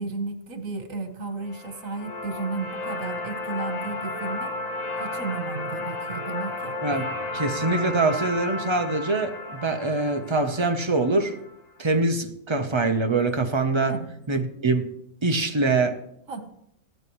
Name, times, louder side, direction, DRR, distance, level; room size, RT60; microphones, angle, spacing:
voice 1, 0.0-4.6 5.0-6.8 13.8-14.1 16.3-16.4, right 4 dB, 75° right, 6 dB, 1.7 m, -33 dB
sound 1, 1.4-11.5, left 2 dB, 90° left, 2.2 m, -33 dB
voice 2, 7.3-11.3 11.8-14.0 14.3-14.9 15.2-16.0, right 3 dB, 25° right, 6 dB, 0.8 m, -24 dB
15.5 x 12.5 x 3.1 m, 0.75 s
omnidirectional pair, 1.4 m